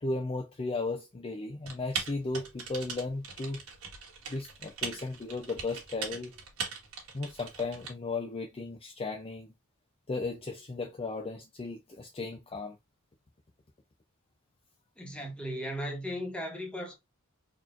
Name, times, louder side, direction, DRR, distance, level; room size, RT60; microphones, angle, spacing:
voice 1, 0.0-3.6 4.3-6.3 7.1-9.5 10.1-12.8, left 3 dB, 25° left, 0.5 m, -35 dB
Typing, 1.6-7.9, right 6 dB, 70° right, 1.6 m, -40 dB
voice 2, 15.0-16.9, equal, 5° left, 1.2 m, -36 dB
4.1 x 3.0 x 2.5 m
head